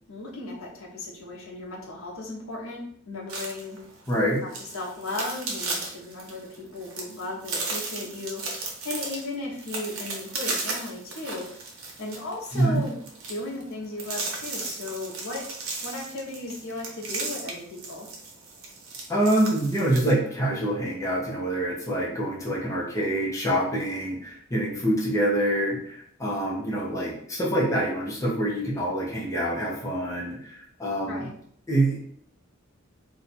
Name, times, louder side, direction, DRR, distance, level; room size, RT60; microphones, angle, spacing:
voice 1, 0.1-3.8 4.4-8.4 8.8-11.4 12.0-13.0 13.3-15.4 15.8-18.1 31.0-31.3, left 2 dB, 80° left, -3 dB, 1.0 m, -36 dB
Ice Cracks, 3.3-20.1, right 3 dB, 85° right, 0.9 m, -35 dB
voice 2, 4.1-4.4 12.5-12.8 19.1-31.3 31.7-32.0, right 1 dB, 15° left, -5 dB, 0.8 m, -26 dB
2.8 x 2.4 x 4.1 m, 0.63 s
head